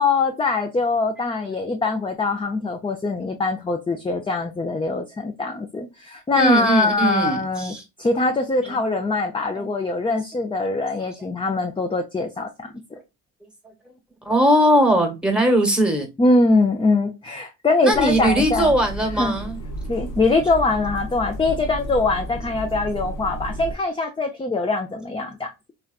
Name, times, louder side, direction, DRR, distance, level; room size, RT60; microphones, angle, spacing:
voice 1, 0.0-12.7 16.2-18.7 19.2-19.3 19.9-25.7, left 3 dB, 15° left, 0.4 m, -22 dB
voice 2, 6.3-7.8 8.6-8.9 9.5-9.7 14.2-16.1 17.8-19.6, right 1 dB, 5° right, 1.2 m, -20 dB
sound 1, 17.9-23.8, equal, 65° left, 0.7 m, -32 dB
3.3 x 2.4 x 2.3 m
supercardioid pair, 60°, 35 cm